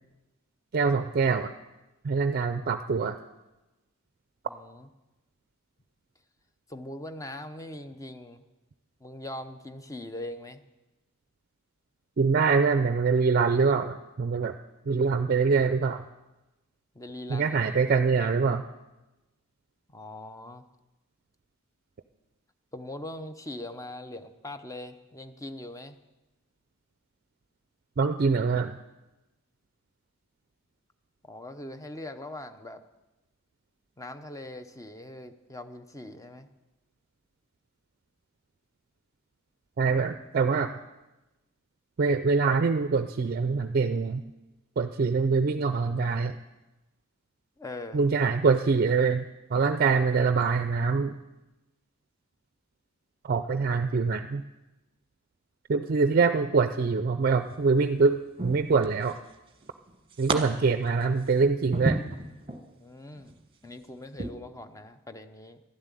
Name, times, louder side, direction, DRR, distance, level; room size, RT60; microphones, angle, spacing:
voice 1, 0.7-1.5 2.0-3.2 12.2-14.6 14.9-16.0 17.3-18.6 28.0-28.8 39.8-40.7 42.0-44.2 44.8-46.4 47.9-49.2 49.5-51.2 53.2-54.4 55.7-58.2 58.4-59.2 60.2-62.0, right 4 dB, 45° right, 9 dB, 0.4 m, -24 dB
voice 2, 4.5-4.9 6.7-8.5 9.0-10.6 16.9-18.1 19.9-20.6 22.7-26.0 31.2-32.8 34.0-36.5 47.6-48.0 62.8-63.3 63.6-65.6, left 1 dB, 15° left, 9 dB, 0.7 m, -41 dB
sound 1, 57.2-57.7 58.4-59.3 59.6-60.4 60.8-62.7 63.2-63.4 64.1-64.3, right 2 dB, 25° right, 1.2 m, -33 dB
12.5 x 7.5 x 9.8 m, 1.1 s
head